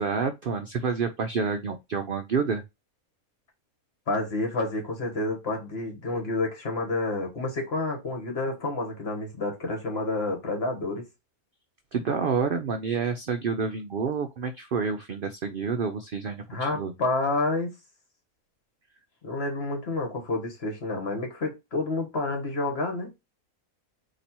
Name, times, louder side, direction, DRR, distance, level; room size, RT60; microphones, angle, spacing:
voice 1, 0.0-2.6 11.9-16.9, right 5 dB, 60° right, 0.5 m, -28 dB
voice 2, 4.1-11.0 16.5-17.7 19.2-23.1, left 2 dB, 45° left, 1.5 m, -29 dB
4.2 x 2.9 x 4.2 m
omnidirectional pair, 1.5 m